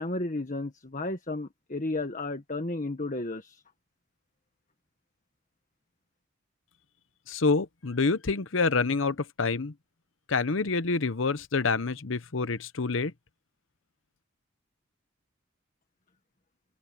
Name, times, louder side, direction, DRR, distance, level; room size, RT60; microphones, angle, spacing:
voice 1, 0.0-3.6, left 2 dB, 40° left, 1.6 m, -33 dB
voice 2, 7.3-9.7 10.3-13.1, left 4 dB, 65° left, 0.9 m, -27 dB
open air
head